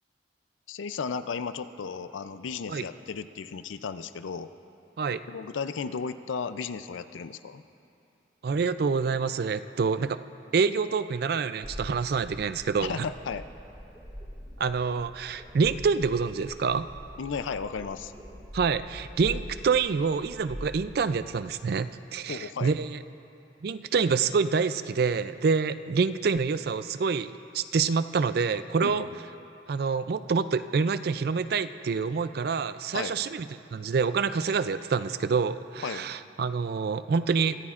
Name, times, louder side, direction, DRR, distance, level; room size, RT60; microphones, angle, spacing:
voice 1, 0.7-4.5 5.3-7.6 12.8-13.4 17.2-18.1 22.3-22.7 28.8-29.2 32.9-33.1 35.8-36.1, left 5 dB, 85° left, 12 dB, 0.4 m, -34 dB
voice 2, 8.4-10.2 10.5-12.9 14.6-16.9 18.5-23.0 23.6-29.0 29.7-33.5 33.7-37.5, right 5 dB, 55° right, 13 dB, 0.3 m, -27 dB
sound 1, 11.6-21.8, equal, 15° right, 3.4 m, -44 dB
24.0 x 14.0 x 2.5 m, 2.8 s
head